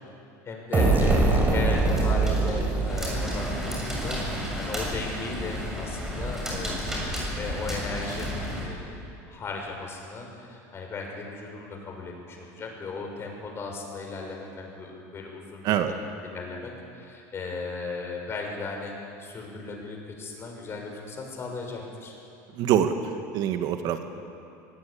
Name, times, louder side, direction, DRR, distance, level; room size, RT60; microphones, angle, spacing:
voice 1, 0.4-8.3 8.6-9.0 9.3-16.0 16.2-18.9 19.2-22.1, left 3 dB, 30° left, 1 dB, 6.3 m, -36 dB
sound 1, 0.7-4.4, right 3 dB, 20° right, 5.2 m, -23 dB
sound 2, 1.8-8.7, equal, 5° right, 7.4 m, -33 dB
voice 2, 22.5-24.0, right 9 dB, 55° right, 7 dB, 1.6 m, -25 dB
25.0 x 19.0 x 8.6 m, 2.6 s
supercardioid pair, 130°, 8 cm